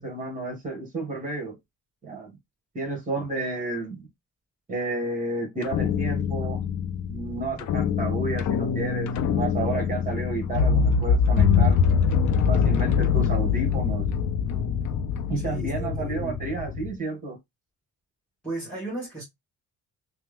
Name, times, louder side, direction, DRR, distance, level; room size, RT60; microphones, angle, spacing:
voice 1, 0.0-1.6 2.0-2.3 2.7-4.1 4.7-6.6 7.1-11.8 12.5-14.1 15.3-17.4, right 3 dB, 25° right, 1.4 m, -31 dB
sound 1, 5.6-16.9, left 6 dB, 60° left, 0.5 m, -24 dB
voice 2, 15.3-16.4 18.4-19.2, right 2 dB, 5° left, 1.6 m, -35 dB
3.3 x 2.0 x 3.3 m
wide cardioid pair, 170°, 32 cm